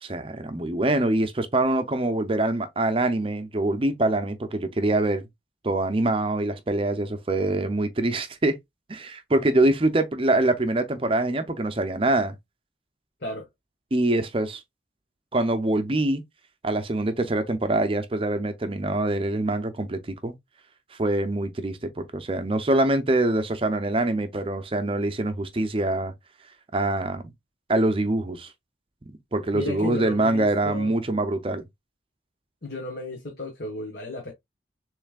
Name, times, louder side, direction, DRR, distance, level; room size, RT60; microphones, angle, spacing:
voice 1, 0.0-5.2 5.6-8.6 8.9-12.3 13.9-14.6 15.3-16.2 16.6-20.3 21.0-26.1 26.7-27.2 27.7-28.5 29.3-31.6, right 2 dB, 30° right, 0.6 m, -24 dB
voice 2, 29.5-30.9 32.6-34.3, left 2 dB, 55° left, 1.3 m, -34 dB
6.9 x 3.2 x 2.3 m
head